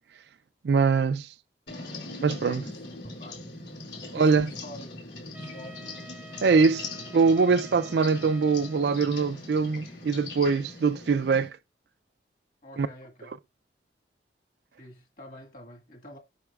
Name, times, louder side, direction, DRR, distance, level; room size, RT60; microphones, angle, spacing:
voice 1, 0.6-1.3 2.2-2.6 4.1-4.5 6.4-11.5 12.8-12.9, right 4 dB, 75° right, 0.4 m, -23 dB
sound 1, 1.7-11.5, left 3 dB, 75° left, 2.8 m, -41 dB
voice 2, 2.4-3.4 4.1-4.9 5.5-5.9 12.6-13.3 14.8-16.2, left 1 dB, 50° left, 1.7 m, -46 dB
Wind instrument woodwind instrument, 5.3-9.2, right 3 dB, 5° right, 0.4 m, -49 dB
7.8 x 5.8 x 2.4 m
head